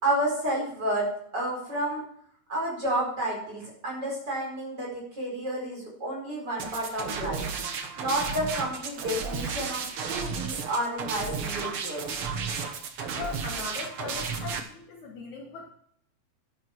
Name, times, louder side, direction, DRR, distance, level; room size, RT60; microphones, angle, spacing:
voice 1, 0.0-2.0 2.5-7.4 8.0-12.0, right 1 dB, 25° right, -2 dB, 5.0 m, -30 dB
sound 1, 6.6-14.6, right 5 dB, 70° right, 1.3 m, -33 dB
voice 2, 13.1-15.7, left 5 dB, 60° left, 0 dB, 2.4 m, -39 dB
11.0 x 10.5 x 4.5 m, 0.66 s
omnidirectional pair, 4.3 m